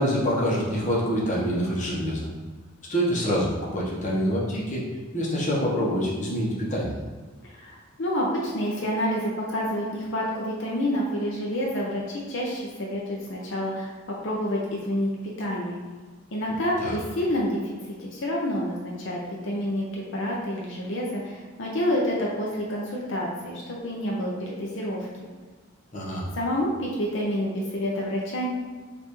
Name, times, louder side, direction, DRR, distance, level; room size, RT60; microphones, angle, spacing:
voice 1, 0.0-2.3 2.9-4.9 5.1-7.0 16.8-17.0 25.9-26.3, equal, 35° left, -5 dB, 0.9 m, -26 dB
voice 2, 7.4-15.1 15.4-15.8 16.3-17.7 18.0-25.1 26.3-28.5, equal, 60° left, -3 dB, 0.6 m, -28 dB
5.4 x 2.6 x 3.0 m, 1.4 s
head